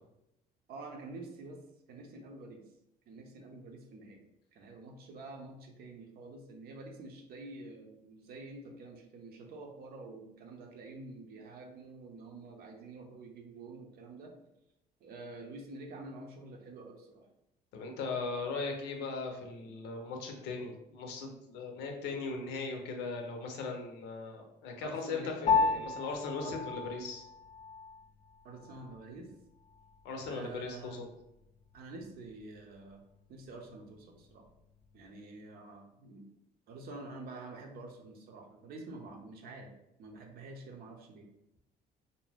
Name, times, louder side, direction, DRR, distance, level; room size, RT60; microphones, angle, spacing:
voice 1, 0.7-1.6 1.9-2.6 3.1-4.2 4.5-14.3 15.0-17.3 24.8-25.4 26.4-26.7 28.4-29.3 30.2-31.1 31.7-33.0 33.3-34.4 34.9-36.3 36.7-39.7 40.0-41.3, right 2 dB, 65° right, 2 dB, 0.6 m, -48 dB
voice 2, 17.7-27.2 30.0-31.1, left 4 dB, 90° left, 2 dB, 0.6 m, -38 dB
Piano, 25.5-35.1, left 4 dB, 50° left, 0.5 m, -36 dB
2.6 x 2.1 x 3.3 m, 0.87 s
cardioid pair, 110°, 17 cm